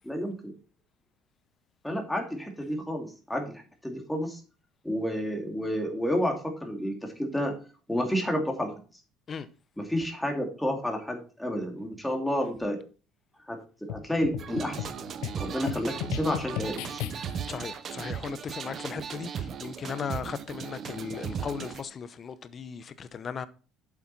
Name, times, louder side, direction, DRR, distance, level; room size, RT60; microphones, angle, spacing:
voice 1, 0.1-0.5 1.8-4.4 4.8-7.5 7.9-8.7 9.8-12.8 13.5-14.9 15.4-16.8, equal, 5° left, 2.4 m, -30 dB
sound 1, 13.9-17.5, left 13 dB, 85° left, 0.7 m, -37 dB
sound 2, 14.4-21.8, right 7 dB, 40° right, 0.9 m, -37 dB
voice 2, 17.5-23.5, left 6 dB, 30° left, 0.8 m, -37 dB
8.1 x 7.4 x 4.1 m
cardioid pair, 135°, 0 cm